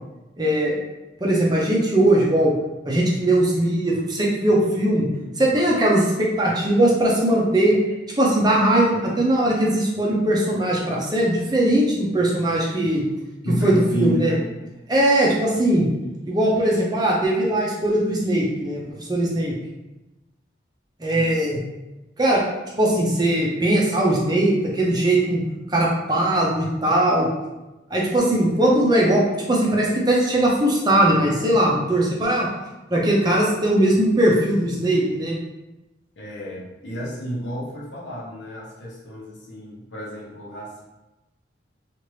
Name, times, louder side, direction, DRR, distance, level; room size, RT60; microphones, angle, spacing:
voice 1, 0.4-0.8 1.2-2.5 2.8-5.1 5.4-7.7 8.2-13.1 13.5-14.3 14.9-15.9 16.3-19.6 21.0-21.6 22.2-22.4 22.8-25.4 25.7-27.3 27.9-32.5 32.9-35.4, right 1 dB, 20° right, -4 dB, 0.6 m, -20 dB
voice 2, 13.4-14.4 21.1-21.4 36.2-40.8, equal, 80° left, -5 dB, 0.9 m, -30 dB
2.9 x 2.5 x 3.1 m, 1.0 s
head